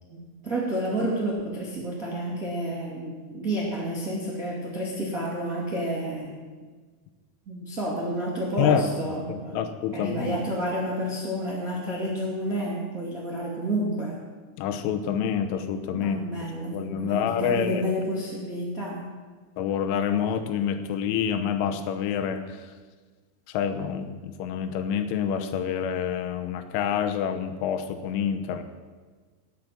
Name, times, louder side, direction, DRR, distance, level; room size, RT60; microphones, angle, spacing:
voice 1, 0.1-6.4 7.4-9.6 9.9-14.2 15.9-19.1, right 1 dB, 55° right, -4 dB, 0.9 m, -30 dB
voice 2, 8.6-10.4 14.6-16.2 16.7-17.9 19.6-22.7 23.5-28.6, left 8 dB, 80° left, 8 dB, 3.4 m, -27 dB
18.5 x 6.7 x 7.5 m, 1.4 s
omnidirectional pair, 5.6 m